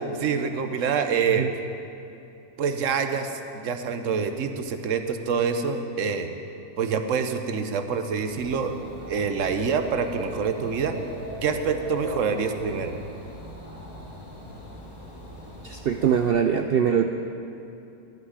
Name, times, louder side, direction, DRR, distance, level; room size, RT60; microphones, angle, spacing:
voice 1, 0.2-1.5 2.6-6.3 6.8-8.8 9.1-10.9 11.4-12.9, right 6 dB, 60° right, 7 dB, 1.1 m, -26 dB
Dog / Bird, 8.3-16.3, equal, 25° left, 3.1 m, -39 dB
voice 2, 15.6-17.0, right 8 dB, 90° right, 6 dB, 0.5 m, -22 dB
13.5 x 6.1 x 9.6 m, 2.7 s
omnidirectional pair, 1.6 m